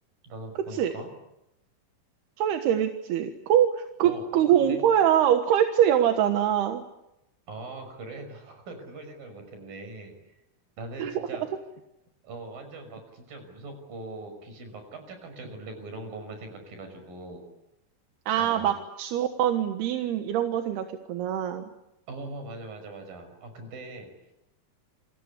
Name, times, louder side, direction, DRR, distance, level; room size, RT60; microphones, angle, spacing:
voice 1, 0.2-1.1 4.0-4.9 7.5-10.4 10.8-11.5 12.2-17.4 18.4-18.7 22.1-24.3, right 2 dB, 60° right, 7 dB, 7.6 m, -41 dB
voice 2, 2.4-6.8 11.0-11.1 18.3-21.7, right 10 dB, 85° right, 7 dB, 3.4 m, -24 dB
29.0 x 25.0 x 8.3 m, 0.89 s
omnidirectional pair, 4.5 m